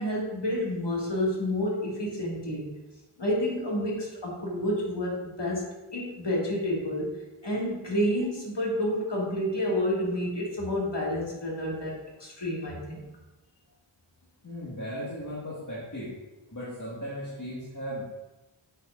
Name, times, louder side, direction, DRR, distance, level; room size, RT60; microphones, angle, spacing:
voice 1, 0.0-2.7 3.2-5.7 5.9-7.2 7.4-13.0, left 1 dB, 55° left, -4 dB, 2.0 m, -29 dB
voice 2, 14.4-16.2 16.5-18.0, equal, 35° left, -8 dB, 1.7 m, -36 dB
7.6 x 6.5 x 2.5 m, 1.0 s
wide cardioid pair, 50°, 50 cm